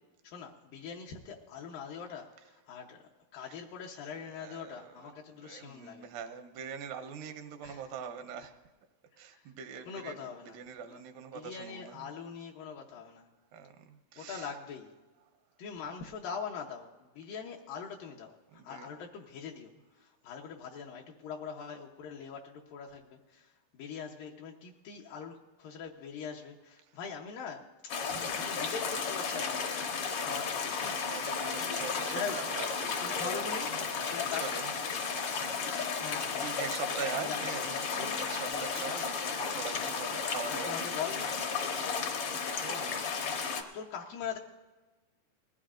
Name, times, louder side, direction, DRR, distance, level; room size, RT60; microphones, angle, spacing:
voice 1, 0.2-6.1 7.6-7.8 9.3-9.5 9.9-10.6 10.8-11.0 11.3-13.3 14.2-14.9 15.6-19.7 20.0-29.7 30.2-30.9 31.6-32.5 33.0-33.7 34.1-34.4 36.0-36.6 37.1-39.0 39.5-40.1 40.5-41.3 42.7-42.9 43.7-44.4, left 6 dB, 75° left, -1 dB, 2.5 m, -42 dB
voice 2, 4.2-5.1 5.4-8.6 9.2-12.1 13.5-14.5 18.5-18.9 30.7-33.7 34.0-34.1 34.4-34.7 35.4-35.5 35.7-36.1 36.4-41.3 42.6-42.9, right 6 dB, 85° right, 6 dB, 2.6 m, -43 dB
sound 1, 27.9-43.6, left 5 dB, 60° left, 1.5 m, -34 dB
20.5 x 15.0 x 2.5 m, 1.2 s
omnidirectional pair, 4.0 m